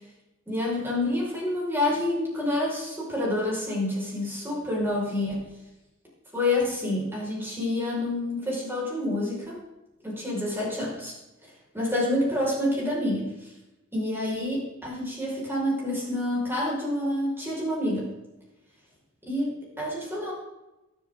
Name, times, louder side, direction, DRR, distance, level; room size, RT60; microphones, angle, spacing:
voice 1, 0.5-5.4 6.3-9.6 10.0-11.1 11.7-13.5 13.9-18.1 19.3-20.3, left 1 dB, 10° right, -5 dB, 5.5 m, -28 dB
22.5 x 8.0 x 3.9 m, 1.0 s
head